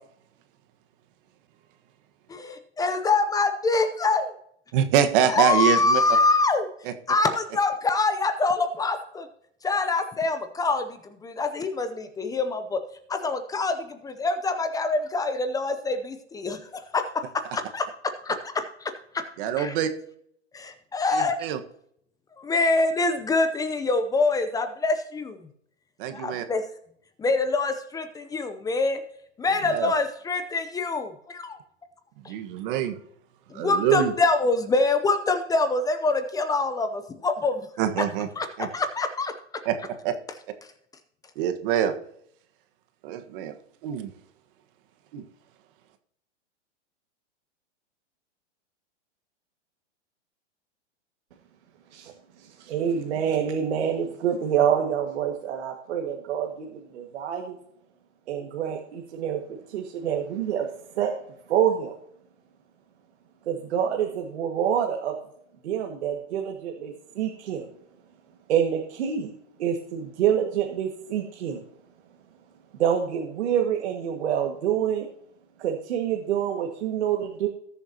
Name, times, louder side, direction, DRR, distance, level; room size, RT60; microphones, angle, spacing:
voice 1, 2.3-4.3 5.3-6.7 7.1-9.3 9.6-10.9 11.2-12.8 13.1-16.6 16.9-17.2 17.5-17.9 18.2-18.9 19.6-19.7 20.5-21.4 22.4-25.4 26.1-26.6 27.2-29.0 29.4-31.6 32.2-32.3 33.5-37.7 38.4-38.5 38.7-39.3, left 3 dB, 10° left, 9 dB, 0.6 m, -25 dB
voice 2, 4.7-6.0 6.8-6.9 19.4-19.9 21.1-21.6 26.0-26.5 29.6-29.9 32.3-33.0 33.5-34.1 37.8-38.3 38.6-38.7 39.6-40.1 41.3-41.9 43.0-43.6 43.8-44.1 45.1-45.3, right 9 dB, 45° right, 7 dB, 1.5 m, -25 dB
voice 3, 52.7-56.7 56.9-57.5 58.3-59.4 59.7-60.7 61.0-61.1 61.5-61.9 63.5-65.1 65.6-67.6 68.5-69.3 69.6-71.6 72.8-75.1 75.6-77.5, right 9 dB, 65° right, 1 dB, 1.9 m, -26 dB
18.5 x 7.1 x 2.9 m, 0.69 s
hypercardioid pair, 135°, 36 cm